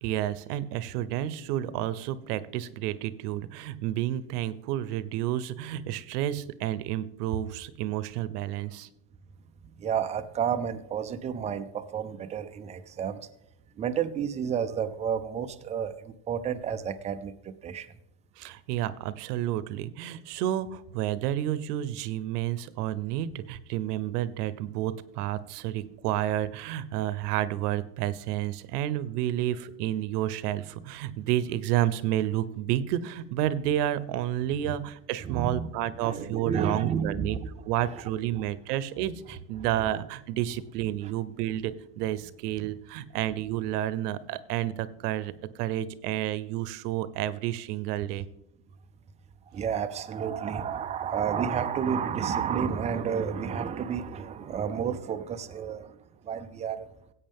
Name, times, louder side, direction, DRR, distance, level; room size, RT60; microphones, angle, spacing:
voice 1, 0.0-8.9 18.4-37.4 37.7-48.2, right 12 dB, 80° right, 16 dB, 0.8 m, -30 dB
voice 2, 9.8-13.2 13.8-17.9 34.6-34.8 35.2-35.7 36.0-37.4 37.8-38.0 38.3-38.5 41.0-41.1 49.5-56.0 56.2-56.9, right 7 dB, 15° right, 10 dB, 0.4 m, -31 dB
16.0 x 8.5 x 3.5 m, 0.80 s
supercardioid pair, 130°, 46 cm